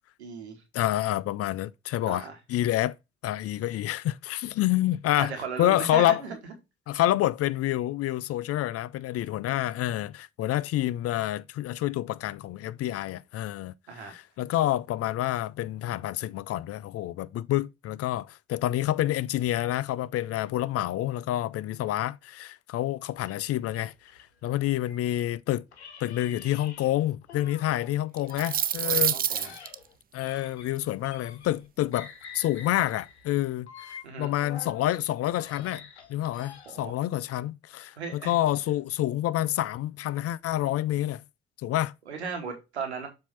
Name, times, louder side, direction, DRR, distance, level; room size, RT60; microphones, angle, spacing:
voice 1, 0.2-0.6 2.0-2.4 5.2-6.4 6.9-7.0 13.9-14.1 28.8-29.5 34.0-34.3 36.6-37.0 38.0-38.3 42.1-43.1, right 5 dB, 85° right, 1.2 m, -36 dB
voice 2, 0.7-3.0 3.2-5.3 5.6-6.2 6.9-13.7 14.0-23.9 24.4-25.6 26.0-29.2 29.4-29.6 30.1-41.2 41.6-41.9, left 14 dB, 45° left, 0.4 m, -28 dB
sound 1, 23.2-25.3 25.7-27.9 28.2-31.7 31.9-34.8 35.2-36.9, left 6 dB, 85° left, 0.7 m, -47 dB
sound 2, 28.2-29.7, right 9 dB, 30° right, 0.4 m, -26 dB
7.2 x 2.7 x 5.5 m
figure-of-eight pair, 40°, 32 cm